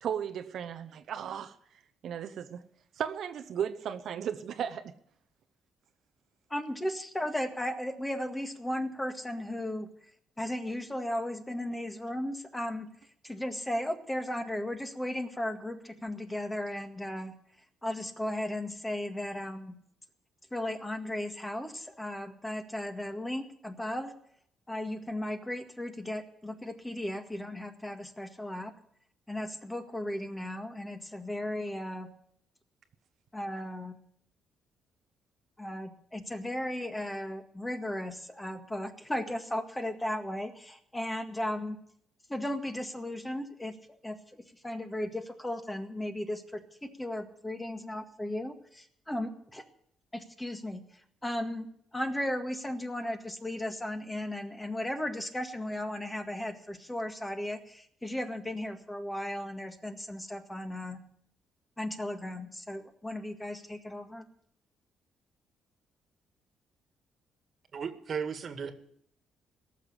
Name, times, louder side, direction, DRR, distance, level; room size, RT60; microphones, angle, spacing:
voice 1, 0.0-1.5 2.0-2.6 3.0-4.9, right 8 dB, 70° right, 0.9 m, -35 dB
voice 2, 6.5-9.9 10.4-12.9 13.2-17.3 17.8-19.8 20.5-24.1 24.7-28.7 29.3-32.1 33.3-34.0 35.6-41.8 42.3-43.7 44.0-44.2 44.6-49.6 50.1-50.8 51.2-51.7 51.9-61.0 61.8-64.2, left 1 dB, 10° left, 1.9 m, -35 dB
voice 3, 67.7-68.7, right 6 dB, 50° right, 1.9 m, -35 dB
18.0 x 6.8 x 9.9 m
cardioid pair, 90°, 0 cm